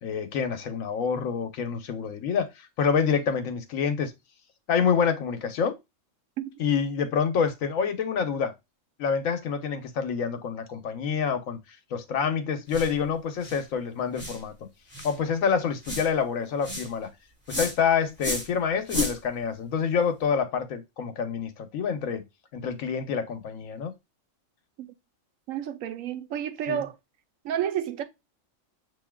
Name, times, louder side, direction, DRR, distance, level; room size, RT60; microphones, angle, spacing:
voice 1, 0.0-4.1 4.7-5.7 6.6-8.5 9.0-11.6 11.9-14.5 15.0-17.1 17.5-22.2 22.5-23.9 26.7-26.8, left 6 dB, 85° left, 1.2 m, -27 dB
sound 1, 12.7-12.9 13.4-13.6 14.2-14.4 14.9-15.2 15.8-16.1 16.6-16.9 17.5-17.8 18.2-18.5 18.9-19.2, left 2 dB, 10° right, 3.1 m, -31 dB
voice 2, 25.5-27.0 27.4-28.0, right 9 dB, 85° right, 1.0 m, -30 dB
6.8 x 2.8 x 2.2 m
omnidirectional pair, 1.4 m